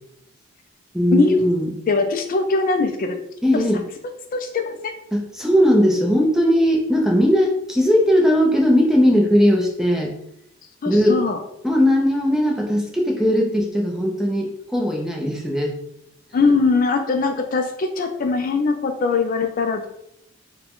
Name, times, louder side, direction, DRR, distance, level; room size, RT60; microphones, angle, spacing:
voice 1, 0.9-1.7 3.4-3.8 5.1-10.1 10.9-11.2 11.6-15.8, equal, ahead, 0 dB, 0.6 m, -18 dB
voice 2, 1.9-3.2 3.5-3.6 4.3-4.9 10.8-11.4 16.3-19.9, left 4 dB, 45° left, 6 dB, 0.4 m, -21 dB
4.6 x 2.2 x 3.6 m, 0.76 s
head